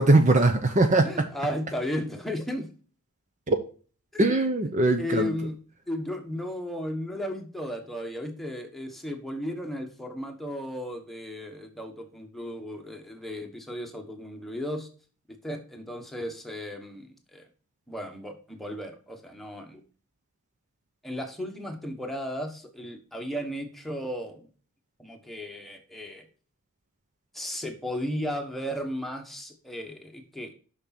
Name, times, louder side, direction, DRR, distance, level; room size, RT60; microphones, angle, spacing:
voice 1, 0.0-1.1 3.5-3.6 4.2-5.3, right 2 dB, 35° right, 0.7 m, -20 dB
voice 2, 1.0-2.7 4.1-4.4 5.0-5.6 5.9-14.9 15.4-17.5 17.9-19.8 21.0-24.5 25.0-26.2 27.3-30.5, equal, ahead, 1.3 m, -35 dB
6.5 x 6.1 x 4.2 m
head